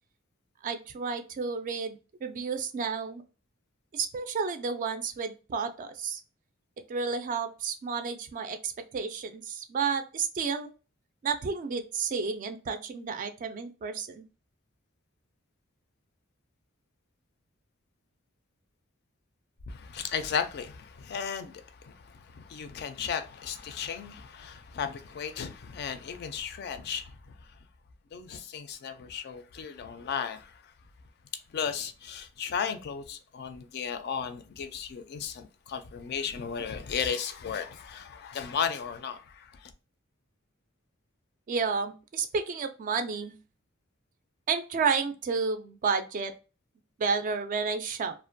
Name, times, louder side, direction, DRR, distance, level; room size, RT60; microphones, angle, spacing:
voice 1, 0.6-3.2 3.9-6.2 6.9-10.7 11.2-14.3 41.5-43.3 44.5-46.3 47.0-48.1, right 5 dB, 40° right, 0.3 m, -31 dB
voice 2, 19.7-27.4 28.1-30.7 31.5-39.7, left 7 dB, 50° left, 0.3 m, -35 dB
2.4 x 2.1 x 2.5 m
head